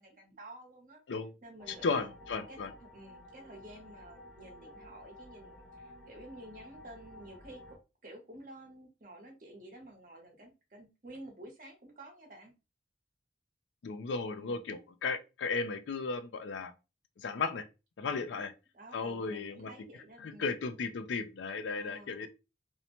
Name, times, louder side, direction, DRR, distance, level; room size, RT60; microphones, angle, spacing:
voice 1, 0.0-1.0 1.4-2.1 2.5-12.5 14.3-14.6 18.0-18.4 18.7-20.6 21.7-22.3, right 1 dB, 45° right, 0.9 m, -51 dB
sound 1, 1.6-7.8, left 1 dB, 5° left, 0.7 m, -53 dB
voice 2, 1.8-2.7 13.8-16.7 17.2-17.6 18.0-18.5 18.9-19.7 20.2-22.3, left 4 dB, 80° left, 0.4 m, -35 dB
2.6 x 2.1 x 2.9 m
head